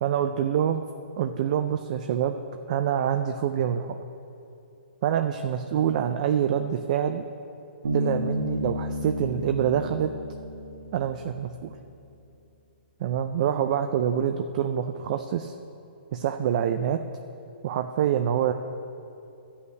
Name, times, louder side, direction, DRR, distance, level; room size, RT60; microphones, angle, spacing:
voice 1, 0.0-0.8 1.2-2.3 2.7-4.0 5.0-7.2 7.9-10.1 10.9-11.7 13.0-15.5 16.1-17.0 17.6-18.5, right 9 dB, 40° right, 7 dB, 0.4 m, -26 dB
Bass guitar, 7.8-11.5, left 1 dB, 80° right, 1.9 m, -32 dB
11.0 x 5.6 x 8.1 m, 2.8 s
hypercardioid pair, 160°, 6 cm